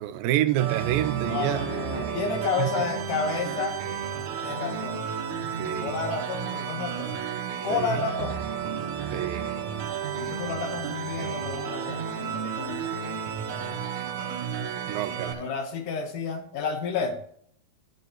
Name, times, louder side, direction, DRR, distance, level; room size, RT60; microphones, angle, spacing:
voice 1, 0.0-1.7 2.6-2.7 5.4-6.0 7.7-8.0 9.1-9.5 14.9-15.5, right 13 dB, 85° right, 2.4 m, -28 dB
sound 1, 0.6-15.3, right 7 dB, 65° right, 2.3 m, -32 dB
voice 2, 1.2-3.8 4.4-5.0 5.8-7.2 7.6-8.4 10.1-13.8 15.2-17.2, left 5 dB, 70° left, 2.5 m, -31 dB
11.0 x 9.3 x 2.9 m
omnidirectional pair, 4.1 m